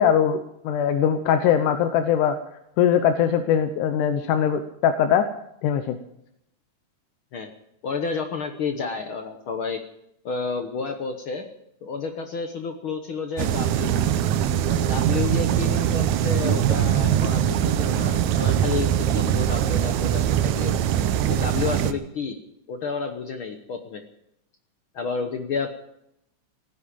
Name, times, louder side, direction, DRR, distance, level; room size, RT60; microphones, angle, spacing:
voice 1, 0.0-2.4 2.8-5.3 5.6-6.0, left 8 dB, 85° left, 9 dB, 2.4 m, -21 dB
voice 2, 7.8-9.8 10.2-11.5 11.8-14.0 14.7-20.7 21.2-22.4 22.7-24.0 24.9-25.7, left 5 dB, 60° left, 6 dB, 1.4 m, -30 dB
sound 1, 13.4-21.9, right 10 dB, 75° right, 2.1 m, -22 dB
17.0 x 9.8 x 8.7 m, 0.78 s
omnidirectional pair, 3.6 m